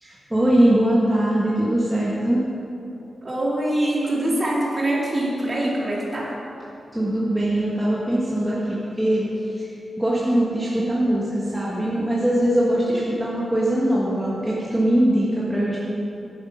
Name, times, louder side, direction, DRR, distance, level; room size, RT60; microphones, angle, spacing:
voice 1, 0.0-2.4 6.9-9.3 9.5-15.8, right 1 dB, 5° right, -7 dB, 1.2 m, -21 dB
voice 2, 3.2-6.4, right 1 dB, 25° right, -4 dB, 2.0 m, -24 dB
10.5 x 7.7 x 5.6 m, 2.9 s
wide cardioid pair, 175°, 0 cm